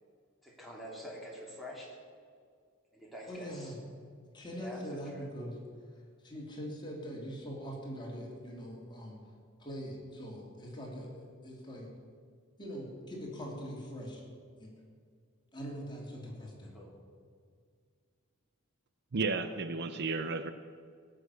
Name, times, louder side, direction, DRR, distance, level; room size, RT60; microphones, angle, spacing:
voice 1, 0.4-1.9 2.9-3.7 4.6-5.3 16.7-16.9, equal, ahead, -4 dB, 2.9 m, -46 dB
voice 2, 3.3-3.8 4.3-5.6 6.2-9.2 9.6-11.2 11.4-11.9 12.6-14.2 14.6-14.7 15.5-16.7, equal, 20° left, -2 dB, 2.8 m, -42 dB
voice 3, 19.1-20.5, right 4 dB, 55° right, 10 dB, 0.6 m, -33 dB
17.5 x 6.6 x 8.2 m, 2.1 s
head